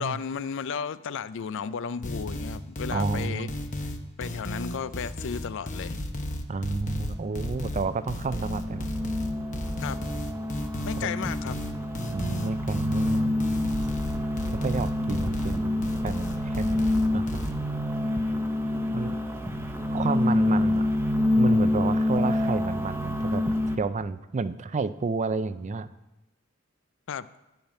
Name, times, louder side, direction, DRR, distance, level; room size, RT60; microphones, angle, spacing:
voice 1, 0.0-3.5 4.2-6.0 9.8-10.1 10.8-11.6 27.1-27.3, left 6 dB, 60° left, 16 dB, 0.4 m, -34 dB
sound 1, 2.0-17.5, left 1 dB, 35° left, 0.9 m, -34 dB
voice 2, 2.9-3.5 6.5-8.9 11.0-11.2 12.1-13.3 14.5-16.3 16.6-16.8 17.1-17.2 18.9-19.1 19.9-20.9 21.4-23.4 23.8-25.9, right 4 dB, 35° right, 14 dB, 0.4 m, -30 dB
sound 2, 7.3-23.8, left 1 dB, 10° right, 0.8 m, -27 dB
10.5 x 5.7 x 8.7 m, 0.99 s
head